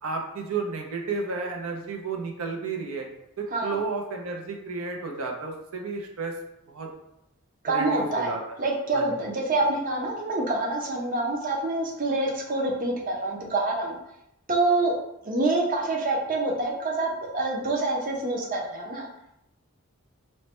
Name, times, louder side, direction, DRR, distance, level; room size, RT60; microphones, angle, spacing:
voice 1, 0.0-3.1 3.4-6.3 6.7-6.9 7.7-8.4 8.9-9.0, right 4 dB, 90° right, 2 dB, 0.6 m, -32 dB
voice 2, 7.6-8.3 8.6-14.0 14.5-15.0 15.2-19.1, right 2 dB, 40° right, -1 dB, 0.5 m, -26 dB
3.1 x 2.1 x 4.2 m, 0.81 s
head